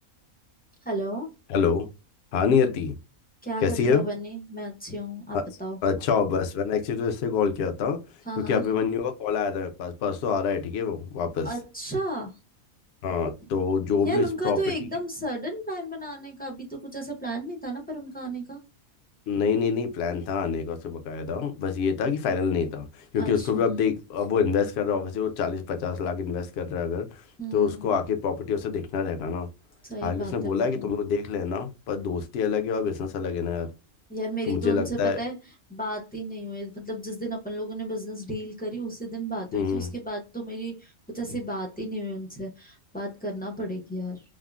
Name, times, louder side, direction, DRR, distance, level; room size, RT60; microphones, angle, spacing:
voice 1, 0.8-1.3 3.4-5.8 8.3-8.6 11.4-12.3 14.0-18.6 23.2-23.6 27.4-27.9 29.9-30.9 34.1-35.3 35.7-44.2, right 1 dB, 15° left, 0.3 m, -33 dB
voice 2, 1.5-1.9 2.3-3.0 3.6-4.0 5.3-5.5 5.8-8.0 8.4-11.5 13.0-14.6 19.3-27.2 27.5-29.5 30.0-33.7 34.5-35.2 39.5-39.9, left 6 dB, 60° left, 0.7 m, -26 dB
3.5 x 2.0 x 2.3 m
omnidirectional pair, 1.5 m